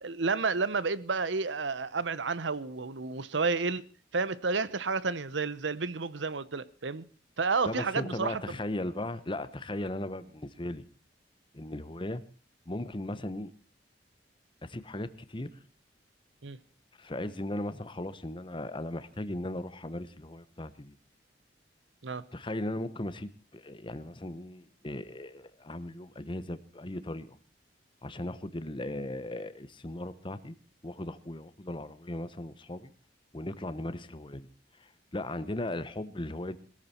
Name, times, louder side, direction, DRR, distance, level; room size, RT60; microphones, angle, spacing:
voice 1, 0.0-3.9 4.1-7.0 7.4-8.4 16.4-16.6 22.0-22.2, right 4 dB, 80° right, 0.9 m, -31 dB
voice 2, 7.6-10.8 11.5-12.2 12.7-13.5 14.6-15.5 17.0-20.9 22.3-27.4 28.0-30.5 30.8-32.9 33.3-34.5 35.1-36.6, left 1 dB, 30° left, 1.0 m, -37 dB
21.0 x 13.5 x 4.4 m
head